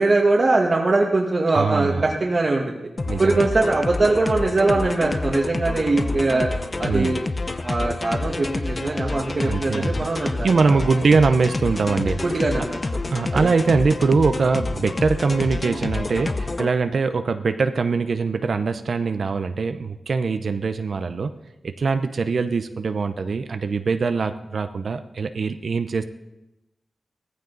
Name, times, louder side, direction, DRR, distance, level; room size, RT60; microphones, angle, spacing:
voice 1, 0.0-2.8 3.2-6.5 6.8-7.2 7.6-10.5 12.0-12.8 13.3-13.5, right 2 dB, 45° right, -3 dB, 1.6 m, -21 dB
voice 2, 1.5-2.1 3.1-3.5 6.9-7.2 9.4-10.1 10.4-12.5 13.1-21.3 21.6-26.1, right 4 dB, 65° right, 9 dB, 0.7 m, -22 dB
sound 1, 3.0-16.7, left 2 dB, 35° left, 0.7 m, -28 dB
16.5 x 15.0 x 4.0 m, 0.96 s
wide cardioid pair, 90°, 0 cm